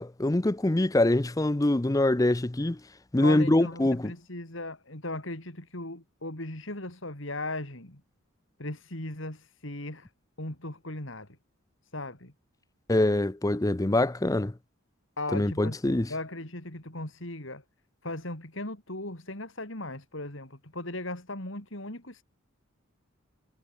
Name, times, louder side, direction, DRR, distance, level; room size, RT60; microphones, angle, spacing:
voice 1, 0.0-2.8 3.1-4.1 12.9-14.5 15.3-16.1, left 1 dB, 15° left, 0.5 m, -24 dB
voice 2, 3.2-8.0 8.6-10.1 10.4-11.4 11.9-12.3 15.2-17.6 18.0-22.2, left 2 dB, 60° left, 4.1 m, -37 dB
head